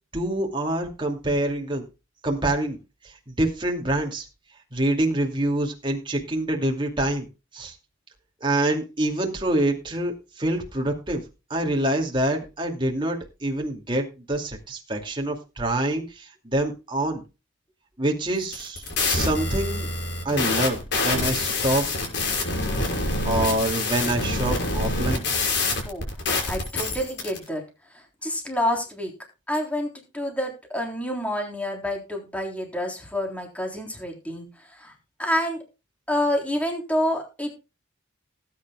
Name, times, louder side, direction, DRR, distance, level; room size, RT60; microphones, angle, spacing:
voice 1, 0.1-1.8 2.2-2.8 3.0-4.3 4.7-7.3 7.5-7.7 8.4-11.2 11.5-17.2 18.0-19.9 20.2-21.8 22.4-22.5 23.2-25.2, right 1 dB, 25° right, 2 dB, 2.4 m, -26 dB
sound 1, 18.4-27.4, left 3 dB, 55° left, 6.0 m, -26 dB
voice 2, 26.5-27.6 27.9-29.1 29.5-34.9 35.2-35.6 36.1-37.6, left 1 dB, 5° left, 2 dB, 3.6 m, -28 dB
19.0 x 9.7 x 2.3 m, 0.29 s
head